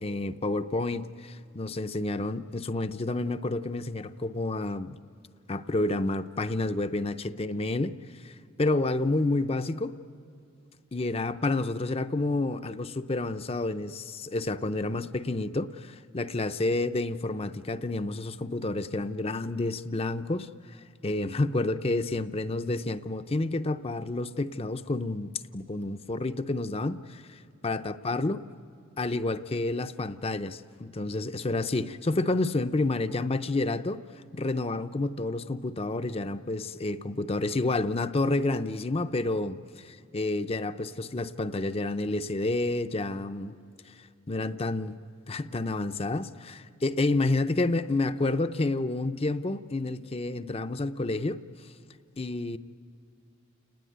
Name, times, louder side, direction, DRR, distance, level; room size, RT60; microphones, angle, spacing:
voice 1, 0.0-5.0 5.5-10.0 10.9-20.5 21.0-28.4 29.0-34.0 34.3-43.5 43.9-45.0 45.3-51.4 52.2-52.6, left 2 dB, 30° left, 0.6 m, -29 dB
29.5 x 19.5 x 9.4 m
head